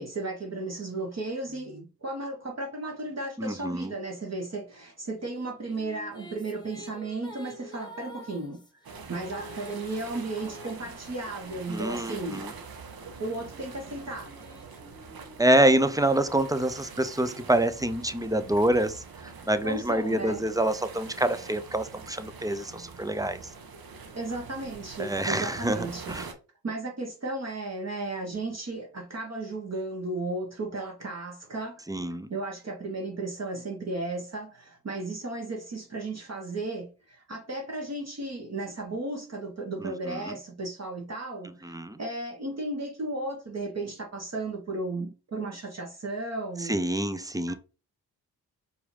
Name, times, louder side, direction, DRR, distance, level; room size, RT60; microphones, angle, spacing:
voice 1, 0.0-8.6 9.1-12.5 13.2-14.3 19.6-20.4 24.1-26.2 26.6-31.8 32.3-46.8 47.5-47.6, right 2 dB, 40° right, 1.3 m, -34 dB
voice 2, 3.4-3.9 11.7-12.5 15.4-23.4 25.0-26.3 31.9-32.3 39.8-40.3 41.6-42.0 46.6-47.5, right 1 dB, 10° right, 0.5 m, -26 dB
sound 1, 5.3-12.3 12.9-16.7, right 1 dB, 10° left, 1.2 m, -48 dB
sound 2, 8.8-26.3, right 5 dB, 55° right, 1.1 m, -44 dB
4.6 x 2.6 x 3.3 m
supercardioid pair, 45°, 42 cm